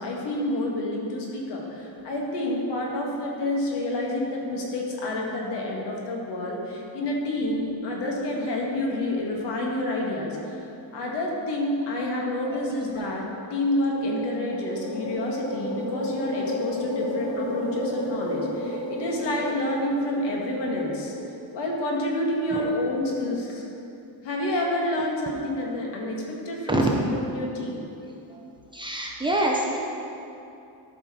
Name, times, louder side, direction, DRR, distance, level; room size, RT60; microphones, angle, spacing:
voice 1, 0.0-21.2 21.5-23.6 24.2-27.8, left 1 dB, 80° left, -1 dB, 1.9 m, -28 dB
sound 1, 13.6-21.2, left 1 dB, 55° left, 1.7 m, -32 dB
voice 2, 28.7-29.9, right 1 dB, 10° right, -1 dB, 0.7 m, -26 dB
12.5 x 5.6 x 4.4 m, 2.7 s
cardioid pair, 160°, 41 cm